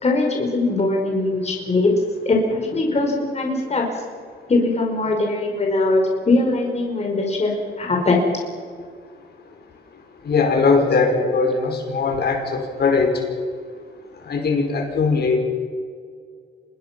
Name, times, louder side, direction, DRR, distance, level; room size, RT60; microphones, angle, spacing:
voice 1, 0.0-1.9 2.2-3.8 4.5-7.5 7.8-8.2, left 2 dB, 35° left, 1 dB, 4.9 m, -21 dB
voice 2, 10.2-13.2 14.2-15.4, left 4 dB, 55° left, 2 dB, 5.5 m, -20 dB
26.5 x 21.0 x 6.1 m, 2.1 s
cardioid pair, 90°, 20 cm